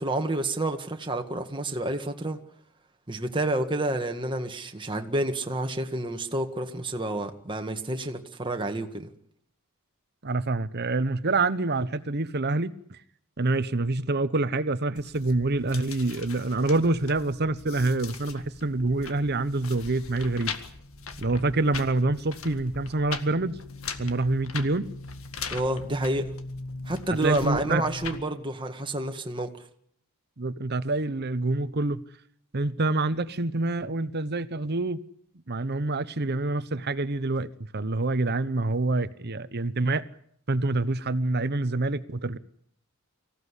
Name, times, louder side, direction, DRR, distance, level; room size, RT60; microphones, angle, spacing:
voice 1, 0.0-2.4 3.1-9.1 25.5-26.3 26.9-29.5, right 1 dB, 25° right, 1.8 m, -29 dB
voice 2, 10.2-13.0 13.4-20.5 21.2-23.6 24.0-24.9 27.2-27.8 30.4-32.0 32.5-35.0 35.5-40.0 40.5-42.4, right 2 dB, 50° right, 1.0 m, -26 dB
sound 1, 15.0-28.2, left 4 dB, 70° left, 1.9 m, -40 dB
25.0 x 16.0 x 9.9 m
head